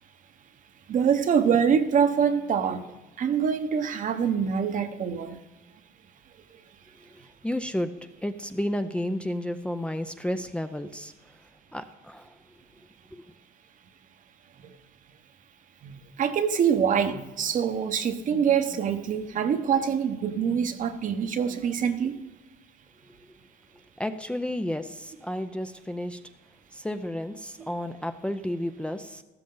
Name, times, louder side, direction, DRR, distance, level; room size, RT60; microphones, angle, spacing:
voice 1, 0.9-2.8 3.2-5.4 15.8-22.2, right 7 dB, 50° right, 9 dB, 1.1 m, -25 dB
voice 2, 7.4-7.9 8.2-11.1 11.7-12.3 24.0-26.2 26.7-29.2, left 1 dB, 5° left, 8 dB, 0.5 m, -31 dB
13.5 x 13.0 x 3.9 m, 1.1 s
cardioid pair, 110°, 17 cm